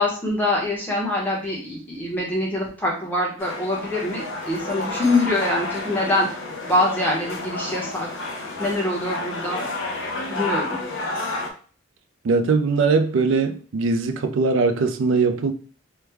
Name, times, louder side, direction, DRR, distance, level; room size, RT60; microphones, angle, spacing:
voice 1, 0.0-6.3 6.7-8.1 8.6-9.6 10.3-10.8, left 1 dB, 10° left, 0.8 m, -24 dB
sound 1, 3.4-11.5, left 2 dB, 70° left, 0.6 m, -30 dB
voice 2, 12.2-15.5, right 4 dB, 70° right, 0.4 m, -20 dB
3.2 x 2.1 x 3.3 m
head